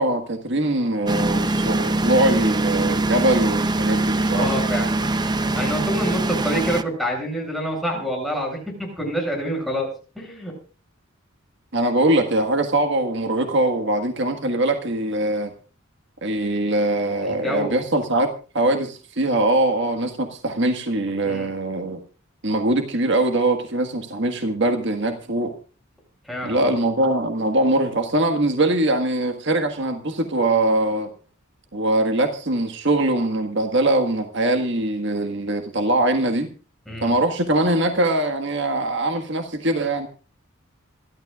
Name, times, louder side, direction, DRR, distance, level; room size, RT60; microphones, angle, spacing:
voice 1, 0.0-4.5 11.7-15.5 16.2-18.3 18.5-22.0 22.4-25.5 26.4-31.1 31.7-36.5 37.0-40.1, right 1 dB, 60° right, 6 dB, 1.7 m, -22 dB
sound 1, 1.1-6.8, right 2 dB, 20° right, 0.7 m, -22 dB
voice 2, 4.3-10.5 17.2-17.8 21.2-21.5 26.2-26.8 36.9-37.1, equal, ahead, 0 dB, 7.3 m, -27 dB
27.5 x 12.5 x 2.5 m, 0.36 s
head